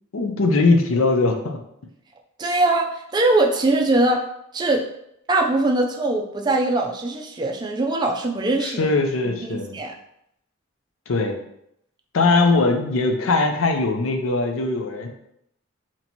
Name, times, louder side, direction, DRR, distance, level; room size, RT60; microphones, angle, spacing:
voice 1, 0.1-1.6 8.6-9.8 11.1-11.4 12.1-15.1, left 3 dB, 80° left, 4 dB, 0.6 m, -20 dB
voice 2, 2.4-4.2 4.5-4.8 5.3-8.9 9.4-9.9, right 2 dB, 20° right, 2 dB, 0.4 m, -21 dB
2.9 x 2.8 x 4.3 m, 0.76 s
head